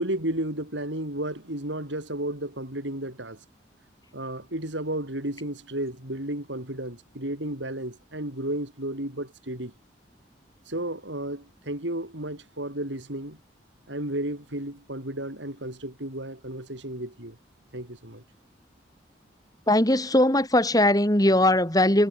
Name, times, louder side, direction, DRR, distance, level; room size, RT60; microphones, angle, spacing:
voice 1, 0.0-3.4 4.1-9.7 10.7-13.4 13.9-17.4 17.7-18.2, right 1 dB, 75° right, 6.5 m, -33 dB
voice 2, 19.7-22.1, left 1 dB, 20° left, 4.8 m, -20 dB
head